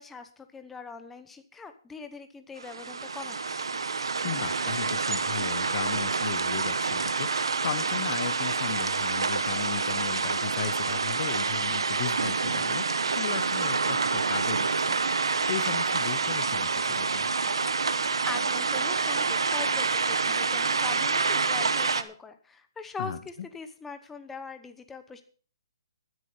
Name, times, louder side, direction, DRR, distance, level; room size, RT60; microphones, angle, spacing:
voice 1, 0.0-3.6 18.2-25.2, left 4 dB, 5° left, 0.9 m, -42 dB
sound 1, 2.6-22.0, right 4 dB, 90° right, 1.1 m, -27 dB
voice 2, 4.2-12.9 13.2-15.0 15.5-17.3 23.0-23.2, left 9 dB, 45° left, 0.8 m, -36 dB
12.5 x 9.8 x 5.6 m
hypercardioid pair, 155°, 3 cm